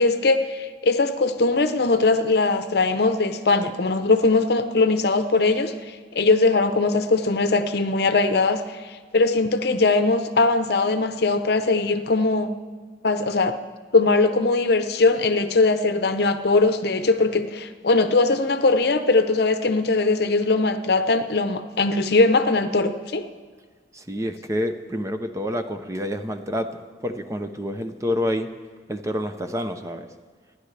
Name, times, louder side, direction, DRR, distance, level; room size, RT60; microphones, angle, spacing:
voice 1, 0.0-5.7 6.1-8.6 9.1-12.5 13.0-13.6 13.9-23.2, left 3 dB, 60° left, 9 dB, 0.8 m, -20 dB
voice 2, 23.9-28.5 28.9-30.1, equal, 15° right, 7 dB, 0.7 m, -28 dB
28.0 x 10.5 x 3.4 m, 1.5 s
head